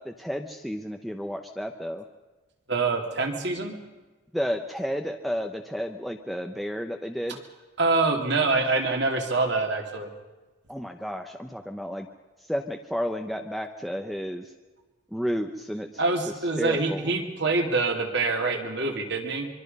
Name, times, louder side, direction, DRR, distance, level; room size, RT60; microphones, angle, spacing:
voice 1, 0.0-2.0 4.3-7.4 10.7-12.1 12.5-14.4 15.1-15.9 16.6-17.1, equal, ahead, 5 dB, 0.8 m, -31 dB
voice 2, 2.7-3.8 7.8-10.1 16.0-19.5, right 3 dB, 55° right, 3 dB, 2.8 m, -25 dB
24.5 x 24.0 x 5.5 m, 1.2 s
head